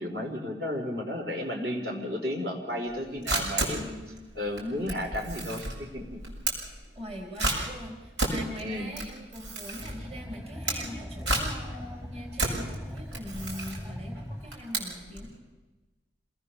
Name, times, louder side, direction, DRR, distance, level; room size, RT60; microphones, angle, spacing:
voice 1, 0.0-4.0 4.3-6.2 8.6-8.9, left 1 dB, 55° right, 0 dB, 4.6 m, -33 dB
Camera, 2.9-15.3, right 2 dB, 70° right, 7.0 m, -33 dB
voice 2, 6.9-15.4, equal, 35° right, 0 dB, 4.2 m, -41 dB
sound 1, 9.7-14.9, equal, 10° right, 1.3 m, -41 dB
27.5 x 19.5 x 7.2 m, 1.1 s
head